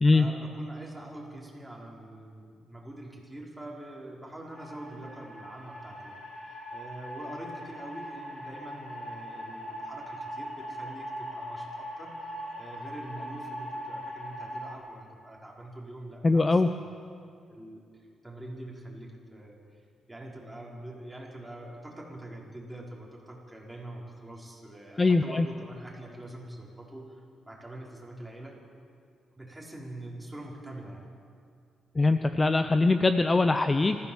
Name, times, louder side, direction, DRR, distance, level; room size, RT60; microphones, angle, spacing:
voice 1, 0.1-6.2 6.7-12.3 12.6-16.8 17.5-19.8 20.1-28.5 29.4-31.1 33.8-34.0, right 1 dB, 5° right, -3 dB, 5.2 m, -44 dB
sound 1, 4.5-14.7, equal, 55° left, 6.9 m, -40 dB
voice 2, 16.2-16.7 25.0-25.5 31.9-34.0, left 3 dB, 25° left, 9 dB, 0.7 m, -22 dB
25.5 x 15.5 x 7.3 m, 2.3 s
cardioid pair, 95°, 0 cm